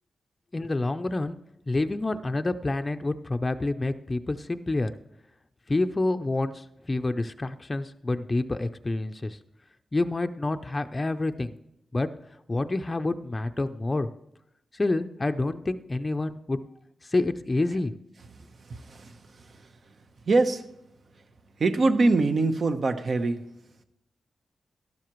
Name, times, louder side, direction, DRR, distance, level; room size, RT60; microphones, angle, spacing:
voice 1, 0.5-1.4 1.7-4.9 5.7-9.4 9.9-11.5 11.9-12.1 12.5-14.1 14.7-16.6 17.0-17.9, left 2 dB, 25° left, 8 dB, 0.5 m, -28 dB
voice 2, 18.6-19.7 20.3-20.7 21.6-23.4, right 3 dB, 60° right, 8 dB, 0.9 m, -24 dB
12.0 x 12.0 x 3.1 m, 0.84 s
cardioid pair, 85°, 0 cm